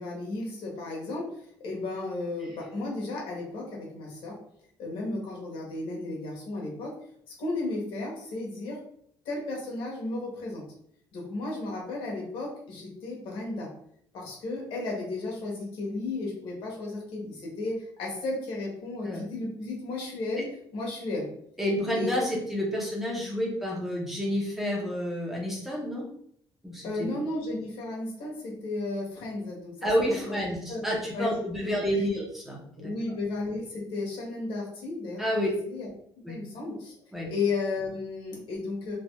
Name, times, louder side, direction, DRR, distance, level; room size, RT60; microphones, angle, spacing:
voice 1, 0.0-4.4 4.8-6.9 7.4-8.8 9.2-10.6 11.1-13.7 14.1-21.3 21.9-22.1 26.8-30.8 31.1-32.1 32.8-35.2 35.7-35.9 36.3-36.9 37.3-39.0, left 2 dB, 75° left, -2 dB, 1.2 m, -34 dB
voice 2, 21.6-26.0 26.6-26.8 29.8-32.9 35.2-35.5 36.2-36.4 37.1-37.3, equal, 5° right, -3 dB, 0.7 m, -29 dB
3.3 x 2.5 x 2.2 m, 0.67 s
cardioid pair, 160°, 9 cm